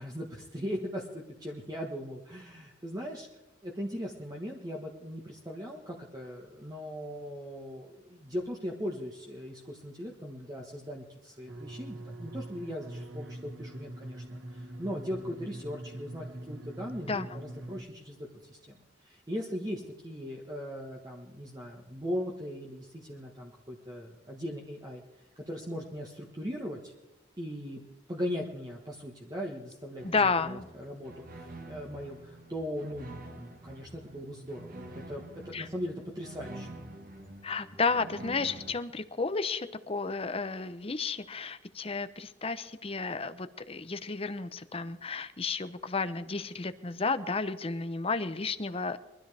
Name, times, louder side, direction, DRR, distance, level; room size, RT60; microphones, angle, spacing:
voice 1, 0.0-3.3 3.6-25.0 25.3-26.9 27.4-27.8 28.1-36.7, equal, 20° right, -2 dB, 1.6 m, -39 dB
sound 1, 11.5-17.8, right 1 dB, 80° right, 1.6 m, -43 dB
voice 2, 30.0-30.6 35.5-35.7 37.4-49.0, left 4 dB, 30° left, 11 dB, 0.8 m, -32 dB
sound 2, 30.0-38.7, right 1 dB, 50° right, 1.8 m, -47 dB
23.0 x 13.0 x 3.5 m, 0.98 s
head